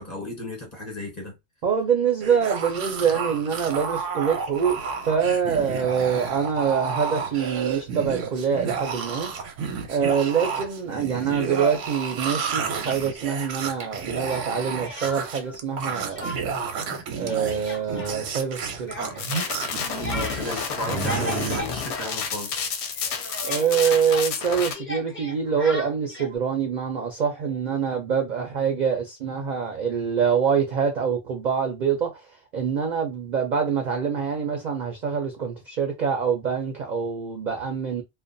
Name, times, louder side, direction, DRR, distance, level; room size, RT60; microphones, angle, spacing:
voice 1, 0.0-1.4 16.9-17.0 20.1-22.7, left 1 dB, 35° left, 0.9 m, -34 dB
voice 2, 1.6-9.3 9.9-16.3 17.1-18.9 23.4-38.0, right 7 dB, 60° right, 0.4 m, -25 dB
sound 1, 2.2-21.6, right 6 dB, 85° right, 0.9 m, -31 dB
Speech, 14.2-15.6 15.9-16.7 17.0-22.7 22.9-26.4, left 1 dB, 20° left, 0.3 m, -37 dB
sound 2, 19.2-24.7, left 6 dB, 65° left, 0.8 m, -30 dB
2.3 x 2.2 x 2.5 m
omnidirectional pair, 1.3 m